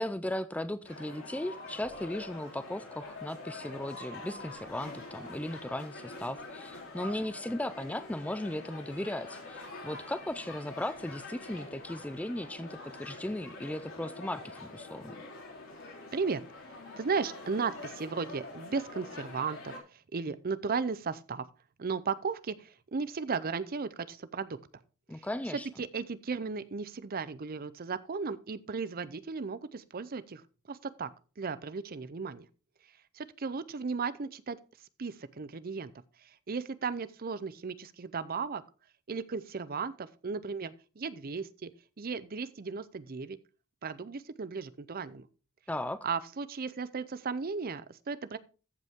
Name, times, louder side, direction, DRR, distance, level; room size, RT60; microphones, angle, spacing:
voice 1, 0.0-15.1 25.1-25.7 45.7-46.0, left 1 dB, 5° left, 13 dB, 0.3 m, -37 dB
sound 1, 0.8-19.8, left 2 dB, 60° left, 3.3 m, -45 dB
voice 2, 17.0-21.4 21.8-24.6 25.1-25.3 25.8-31.1 31.4-32.5 33.1-34.6 35.0-35.9 36.2-38.6 39.1-41.7 42.0-43.4 43.8-45.3 46.0-48.4, right 5 dB, 40° right, 15 dB, 0.6 m, -35 dB
14.0 x 5.4 x 3.6 m, 0.34 s
head